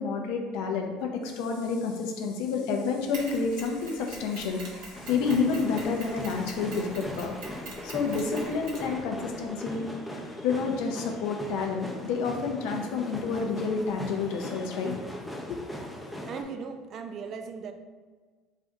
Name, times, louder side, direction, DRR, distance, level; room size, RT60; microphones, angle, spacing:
voice 1, 0.0-4.6 5.1-7.3 7.8-9.9 10.4-14.9 15.5-15.6, left 5 dB, 70° left, 2 dB, 0.4 m, -29 dB
Mechanisms, 3.1-9.5, right 2 dB, 70° right, 0.9 m, -45 dB
sound 1, 4.9-16.4, left 1 dB, 5° left, 0.5 m, -39 dB
voice 2, 16.2-17.7, right 5 dB, 50° right, 7 dB, 0.3 m, -38 dB
2.5 x 2.4 x 3.9 m, 1.4 s
hypercardioid pair, 65°, 0 cm